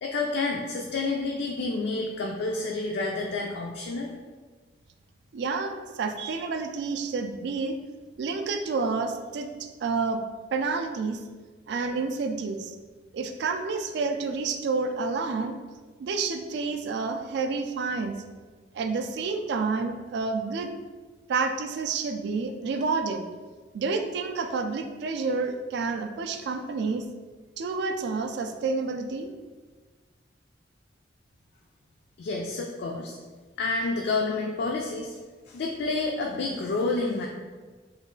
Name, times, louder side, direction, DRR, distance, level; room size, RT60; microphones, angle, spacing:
voice 1, 0.0-4.1 32.2-33.2 33.6-35.2 35.5-37.3, left 3 dB, 60° left, 0 dB, 0.3 m, -29 dB
voice 2, 5.3-7.8 8.2-10.2 10.5-11.2 11.7-12.8 13.1-15.6 16.0-18.2 18.7-20.7 21.3-23.2 23.7-27.0 27.6-29.3, right 4 dB, 65° right, 6 dB, 0.3 m, -29 dB
3.1 x 2.3 x 3.7 m, 1.4 s
head